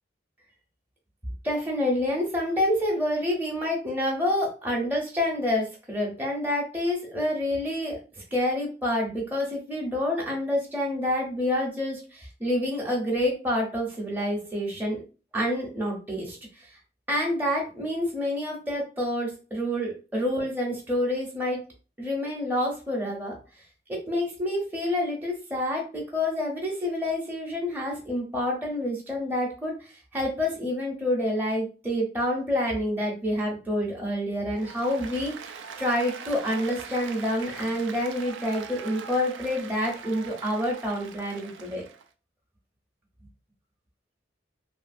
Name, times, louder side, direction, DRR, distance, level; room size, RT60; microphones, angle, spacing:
voice 1, 1.4-8.0 8.3-15.0 15.3-16.8 17.1-21.6 22.0-23.4 23.9-41.8, left 1 dB, 10° right, -2 dB, 0.6 m, -28 dB
Applause, 34.5-42.1, right 6 dB, 85° right, 0.4 m, -42 dB
2.8 x 2.5 x 2.4 m, 0.34 s
head